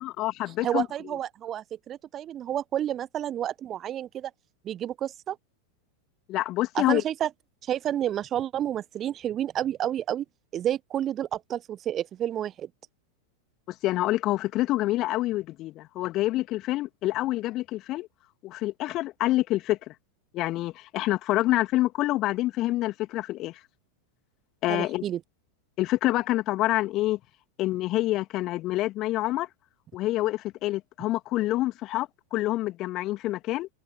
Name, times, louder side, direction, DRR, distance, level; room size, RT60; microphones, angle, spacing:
voice 1, 0.0-0.9 6.3-7.0 13.8-18.1 18.4-19.9 20.3-23.6 24.6-25.0 25.8-27.2 27.6-29.5 29.9-33.7, left 16 dB, 35° left, 2.5 m, -27 dB
voice 2, 0.6-4.3 4.6-5.4 6.7-7.3 7.6-10.2 10.5-12.7 24.7-25.2, right 11 dB, 30° right, 0.9 m, -30 dB
figure-of-eight pair, 90°, 0 cm